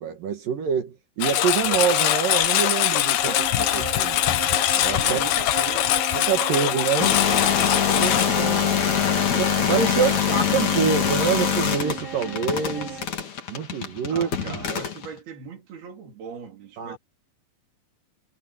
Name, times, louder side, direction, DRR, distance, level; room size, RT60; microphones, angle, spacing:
voice 1, 0.0-4.2 4.8-5.2 6.1-7.2 7.9-8.9 9.4-13.0 13.5-14.6 16.8-17.0, right 7 dB, 65° right, 3.4 m, -26 dB
Engine, 1.2-8.3, left 12 dB, 80° left, 3.1 m, -22 dB
sound 1, 3.2-13.1, right 7 dB, 50° right, 5.9 m, -36 dB
voice 2, 5.0-6.0 6.5-6.9 7.9-8.5 10.0-10.2 14.1-17.0, right 6 dB, 85° right, 5.8 m, -40 dB
sound 2, 7.0-15.1, left 8 dB, 50° left, 3.8 m, -24 dB
omnidirectional pair, 4.3 m